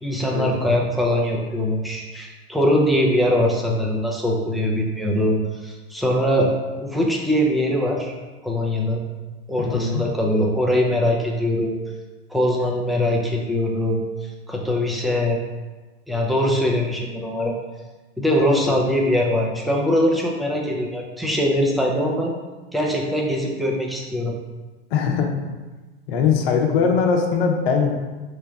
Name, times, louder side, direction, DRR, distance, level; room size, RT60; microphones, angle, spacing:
voice 1, 0.0-5.3 5.6-6.5 6.8-8.1 8.4-9.0 9.5-11.8 12.3-14.0 14.5-15.4 16.1-17.5 18.2-22.3 22.7-24.3, left 1 dB, ahead, -1 dB, 0.3 m, -22 dB
voice 2, 9.6-10.0 24.9-25.3 26.1-27.9, left 6 dB, 60° left, 2 dB, 0.8 m, -20 dB
5.5 x 3.2 x 2.3 m, 1.3 s
hypercardioid pair, 105°, 33 cm